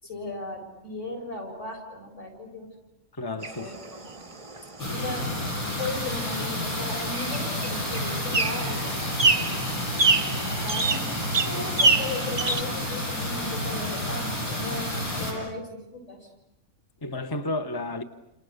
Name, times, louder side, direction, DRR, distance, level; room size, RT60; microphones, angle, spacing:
voice 1, 0.0-2.7 3.6-4.2 4.9-5.3 5.8-9.8 10.3-11.0 11.5-16.3, left 2 dB, 55° left, 2 dB, 7.6 m, -37 dB
voice 2, 3.2-3.8 11.5-11.7 15.3-15.5 17.0-18.0, left 2 dB, 20° left, 7 dB, 0.9 m, -32 dB
sound 1, 3.4-12.6, right 3 dB, 25° right, 0.9 m, -28 dB
sound 2, 4.8-15.3, left 1 dB, 75° left, 7.6 m, -30 dB
30.0 x 29.0 x 6.6 m, 0.90 s
omnidirectional pair, 1.5 m